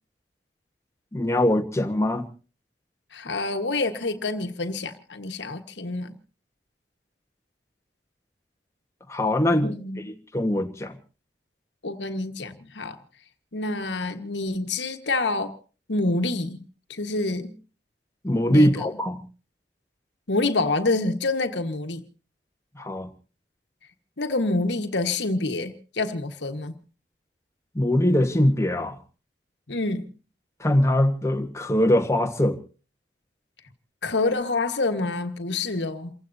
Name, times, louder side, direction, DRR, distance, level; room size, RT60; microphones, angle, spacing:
voice 1, 1.1-2.3 9.1-11.0 18.2-19.2 22.7-23.1 27.7-29.0 30.6-32.6, left 1 dB, 15° left, 1.4 m, -22 dB
voice 2, 3.1-6.2 9.6-10.1 11.8-13.0 13.5-15.5 15.9-16.6 16.9-17.6 18.5-18.9 20.3-22.0 24.2-26.8 29.7-30.1 34.0-36.1, left 2 dB, 90° left, 1.5 m, -27 dB
28.5 x 16.0 x 2.7 m
head